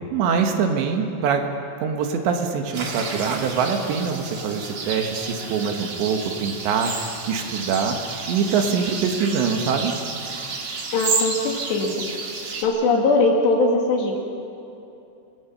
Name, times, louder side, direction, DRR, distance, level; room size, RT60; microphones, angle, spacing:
voice 1, 0.1-1.4 1.8-8.0 8.3-9.9, right 6 dB, 75° right, 4 dB, 3.5 m, -24 dB
sound 1, 2.7-12.6, right 4 dB, 45° right, 1.9 m, -31 dB
voice 2, 10.9-11.9 12.6-14.2, left 3 dB, 70° left, 0 dB, 4.3 m, -20 dB
28.0 x 19.0 x 5.7 m, 2.8 s
omnidirectional pair, 5.3 m